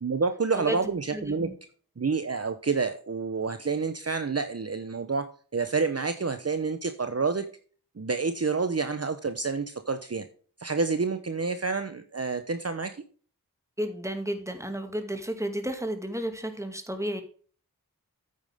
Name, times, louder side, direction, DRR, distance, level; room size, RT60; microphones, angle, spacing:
voice 1, 0.0-1.5 2.0-7.5 8.0-10.3 10.6-13.0, right 4 dB, 45° right, 9 dB, 0.9 m, -28 dB
voice 2, 1.1-1.6 13.8-17.2, right 1 dB, 10° right, 6 dB, 2.2 m, -32 dB
9.4 x 8.7 x 3.6 m, 0.42 s
wide cardioid pair, 50°, 34 cm